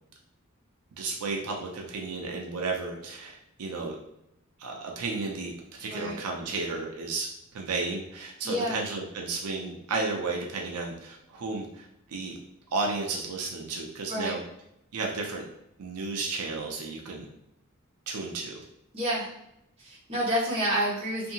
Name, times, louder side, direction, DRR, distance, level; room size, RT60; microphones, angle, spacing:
voice 1, 1.0-4.0 4.6-5.5 5.8-7.3 7.5-12.3 12.7-14.4 14.9-15.4 15.8-17.3 18.1-18.6, right 3 dB, 90° right, 0 dB, 0.5 m, -33 dB
voice 2, 5.9-6.2 8.4-8.8 14.1-14.3 18.9-19.3 19.8-21.3, equal, 25° right, -7 dB, 1.1 m, -29 dB
2.6 x 2.6 x 2.7 m, 0.81 s
head